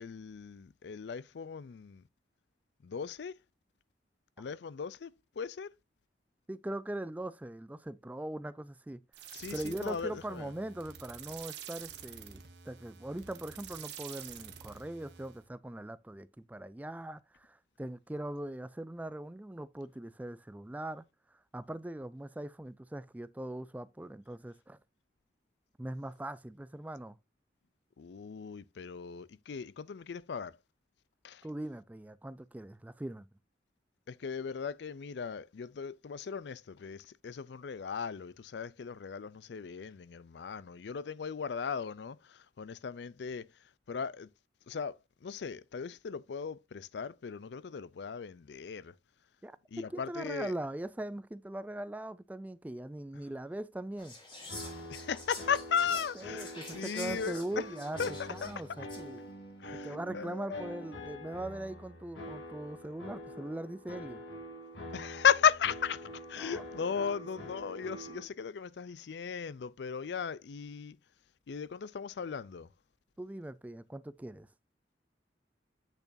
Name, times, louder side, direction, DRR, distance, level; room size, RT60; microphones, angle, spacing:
voice 1, 0.0-2.0 2.8-3.3 4.4-5.7 9.3-10.5 28.0-30.5 31.2-31.4 34.1-42.2 42.6-43.5 43.9-44.3 44.7-44.9 45.2-48.9 49.7-50.5 54.9-57.4 58.0-58.1 58.4-58.5 59.6-59.9 60.1-60.6 64.9-66.0 66.3-71.0 71.5-72.7, left 7 dB, 65° left, 0.4 m, -36 dB
voice 2, 6.5-9.0 9.5-21.1 21.5-24.8 25.8-27.2 31.4-33.3 49.4-54.1 55.9-59.2 59.8-64.2 66.4-66.6 66.9-67.5 73.2-74.5, right 1 dB, 10° right, 0.3 m, -41 dB
sound 1, 9.1-15.5, right 8 dB, 70° right, 1.3 m, -48 dB
Whispering, 54.0-59.1, left 2 dB, 25° left, 3.3 m, -47 dB
sound 2, 54.5-68.2, equal, 85° left, 2.9 m, -45 dB
8.3 x 6.8 x 2.6 m
head